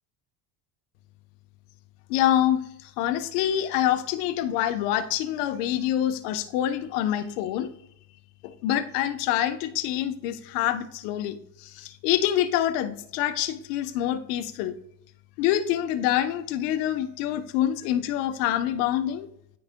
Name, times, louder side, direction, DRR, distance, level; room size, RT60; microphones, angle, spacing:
voice 1, 2.1-7.7 8.4-14.7 15.4-19.3, left 11 dB, 85° left, 9 dB, 1.0 m, -26 dB
13.0 x 4.9 x 2.2 m, 0.73 s
cardioid pair, 175°, 46 cm